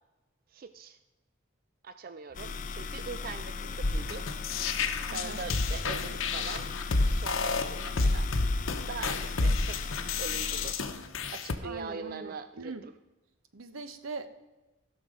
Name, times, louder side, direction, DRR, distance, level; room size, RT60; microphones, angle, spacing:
voice 1, 0.5-1.0 1.8-4.3 5.0-6.7 7.0-8.3 8.6-10.8 11.3-12.8, right 5 dB, 45° right, 11 dB, 0.4 m, -42 dB
sound 1, 2.3-10.7, left 4 dB, 40° left, 0.4 m, -38 dB
sound 2, 2.3-9.2, left 1 dB, 65° right, 2.7 m, -57 dB
sound 3, 3.8-11.6, left 3 dB, 75° left, 0.8 m, -30 dB
voice 2, 5.1-5.4 11.6-12.8 13.5-14.3, right 3 dB, 90° right, 10 dB, 0.9 m, -41 dB
16.0 x 6.2 x 5.0 m, 1.1 s
head